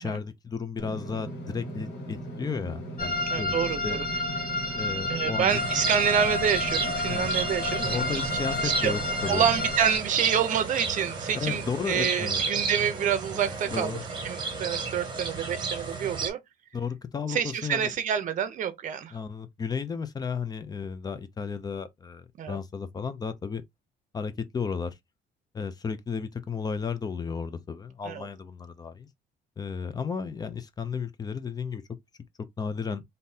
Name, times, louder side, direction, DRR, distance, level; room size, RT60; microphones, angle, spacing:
voice 1, 0.0-3.6 3.8-4.0 4.7-5.6 7.1-7.3 7.9-9.4 11.3-12.4 13.7-14.0 16.7-17.9 19.1-23.6 24.1-24.9 25.5-29.1 29.6-31.8 32.4-33.0, left 5 dB, 20° left, 0.5 m, -33 dB
Engine / Mechanisms, 0.8-9.7, right 1 dB, 65° left, 1.6 m, -38 dB
sound 1, 3.0-10.0, left 2 dB, 50° left, 1.3 m, -30 dB
voice 2, 3.3-4.0 5.1-8.2 8.6-8.9 9.3-14.0 14.2-16.4 17.3-19.1 22.4-22.6 28.0-28.3, right 8 dB, 45° right, 0.7 m, -27 dB
sound 2, 5.5-16.3, right 4 dB, 25° right, 1.0 m, -33 dB
3.7 x 2.7 x 2.7 m
cardioid pair, 150°, 18 cm